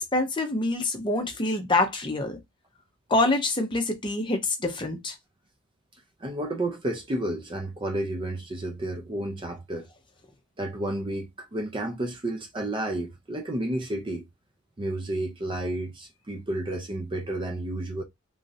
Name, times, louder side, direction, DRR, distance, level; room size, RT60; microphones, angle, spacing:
voice 1, 0.0-2.4 3.1-5.1, left 2 dB, 25° left, 0.7 m, -26 dB
voice 2, 6.2-9.9 10.6-14.3 14.8-18.0, right 1 dB, 25° right, 0.4 m, -31 dB
3.1 x 2.6 x 2.6 m
head